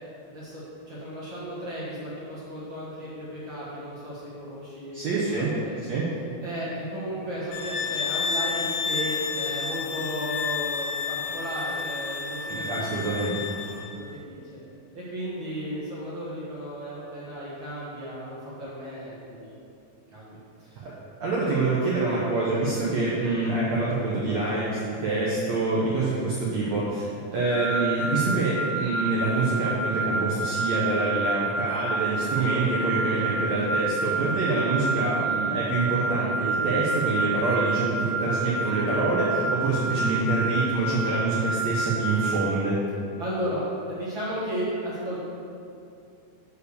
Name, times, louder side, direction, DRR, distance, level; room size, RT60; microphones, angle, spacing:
voice 1, 0.3-5.0 5.3-5.7 6.4-13.2 13.9-14.6 14.9-19.5 20.1-20.8 43.2-45.2, equal, 50° right, -9 dB, 1.4 m, -34 dB
voice 2, 4.9-5.5 5.9-6.1 12.5-13.4 20.8-20.9 21.2-42.8, right 3 dB, 85° right, -6 dB, 1.5 m, -26 dB
sound 1, 7.5-13.9, left 5 dB, 90° left, 2.7 m, -30 dB
sound 2, 27.5-42.4, right 3 dB, 60° left, 1.9 m, -29 dB
6.7 x 4.7 x 6.8 m, 2.5 s
omnidirectional pair, 4.5 m